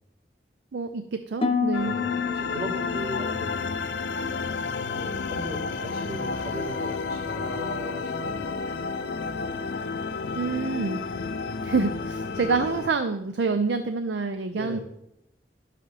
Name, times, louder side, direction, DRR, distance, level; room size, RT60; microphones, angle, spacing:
voice 1, 0.7-1.9 10.4-11.0 11.6-14.8, right 4 dB, 75° right, 9 dB, 0.5 m, -27 dB
Harp, 1.4-5.5 5.8-6.4 6.9-7.2, left 5 dB, 30° left, 0.7 m, -32 dB
sound 1, 1.7-12.9, left 4 dB, 80° left, 0.6 m, -31 dB
voice 2, 1.8-3.8 5.0-8.4 14.5-14.8, left 1 dB, 55° right, -5 dB, 3.9 m, -37 dB
11.0 x 7.6 x 3.3 m, 0.80 s
head